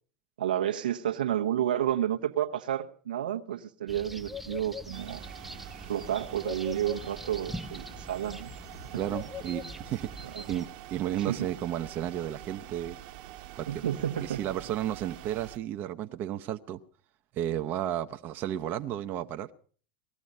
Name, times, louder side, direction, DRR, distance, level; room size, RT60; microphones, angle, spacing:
voice 1, 0.4-5.2 5.9-8.5 8.9-9.0 10.2-10.6 11.2-11.5 13.7-14.4, right 11 dB, 80° right, 0.9 m, -31 dB
sound 1, 3.9-10.7, left 2 dB, 5° right, 0.8 m, -42 dB
sound 2, 4.9-15.6, right 13 dB, 60° right, 1.2 m, -46 dB
voice 2, 9.0-13.0 13.5-13.8 14.2-16.8 17.3-19.5, right 11 dB, 45° right, 0.7 m, -33 dB
19.0 x 13.5 x 5.3 m
hypercardioid pair, 90°, 5 cm